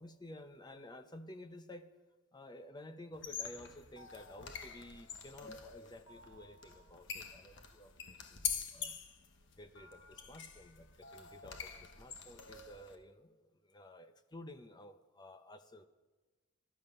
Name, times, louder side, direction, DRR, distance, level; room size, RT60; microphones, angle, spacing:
voice 1, 0.0-1.9 2.3-9.0 9.5-15.9, left 1 dB, 20° left, 9 dB, 0.8 m, -53 dB
sound 1, 3.1-13.0, left 7 dB, 55° left, 1.2 m, -45 dB
17.5 x 12.5 x 5.4 m, 1.2 s
head